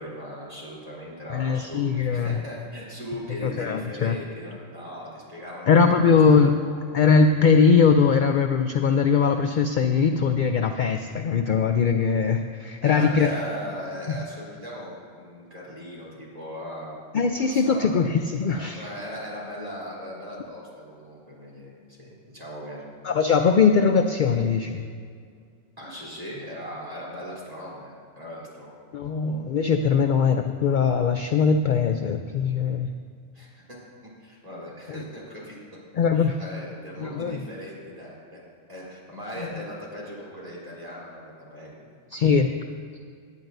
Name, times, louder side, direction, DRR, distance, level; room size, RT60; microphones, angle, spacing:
voice 1, 0.0-5.8 6.3-7.1 12.8-17.0 17.4-17.9 18.5-22.9 25.8-28.7 33.3-33.8 34.2-35.6 36.1-38.4 38.7-42.4, equal, 30° right, -6 dB, 3.6 m, -38 dB
voice 2, 1.3-2.4 3.4-4.2 5.7-6.5 6.9-13.3 17.1-18.8 23.0-24.8 28.9-32.9 34.9-35.0 36.0-36.4 37.0-37.4 42.1-42.5, left 5 dB, 60° left, 6 dB, 0.5 m, -21 dB
18.0 x 11.0 x 2.6 m, 2.2 s
omnidirectional pair, 1.3 m